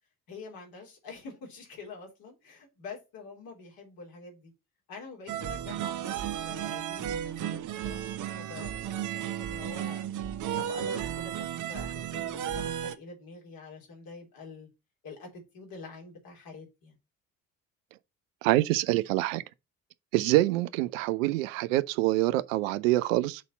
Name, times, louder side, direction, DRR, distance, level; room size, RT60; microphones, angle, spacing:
voice 1, 0.3-4.5 4.9-10.1 10.5-14.7 15.0-16.9, left 4 dB, 60° left, 3.3 m, -46 dB
sound 1, 5.3-12.9, right 10 dB, 45° right, 0.9 m, -34 dB
voice 2, 18.4-19.4 20.1-23.4, right 17 dB, 70° right, 0.5 m, -25 dB
6.1 x 4.1 x 5.6 m
figure-of-eight pair, 50°, 40 cm